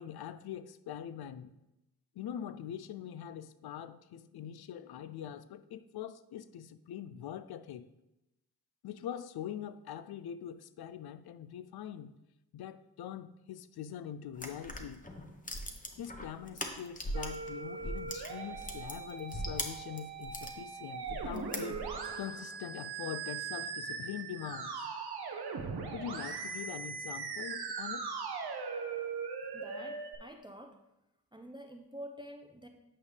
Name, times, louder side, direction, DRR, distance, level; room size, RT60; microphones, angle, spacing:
voice 1, 0.0-1.5 2.2-7.9 8.8-12.1 12.5-15.0 16.0-21.9 22.2-24.9 25.9-28.1, left 9 dB, 75° left, 0.5 m, -43 dB
sound 1, 14.3-17.5 17.8-20.6 21.0-22.1, left 1 dB, 20° left, 1.0 m, -40 dB
Musical instrument, 17.1-30.1, right 5 dB, 80° right, 0.9 m, -40 dB
voice 2, 29.5-30.8 31.3-32.7, equal, 10° right, 0.6 m, -48 dB
8.5 x 5.3 x 3.3 m
cardioid pair, 60°, 38 cm